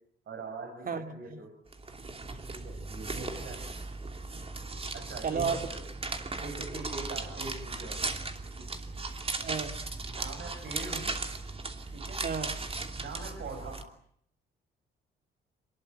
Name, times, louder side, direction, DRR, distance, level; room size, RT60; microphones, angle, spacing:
voice 1, 0.3-1.5 2.5-3.7 4.9-5.9 6.4-8.0 8.6-8.8 10.1-11.2 11.9-12.2 13.0-13.9, right 3 dB, 65° right, 3 dB, 5.7 m, -42 dB
voice 2, 0.9-1.4 5.2-5.7 9.4-9.7 12.2-12.5, right 6 dB, 45° right, 7 dB, 2.6 m, -32 dB
sound 1, 1.7-13.8, right 3 dB, 30° right, 2.8 m, -37 dB
24.0 x 20.5 x 9.0 m, 0.68 s
cardioid pair, 90°, 20 cm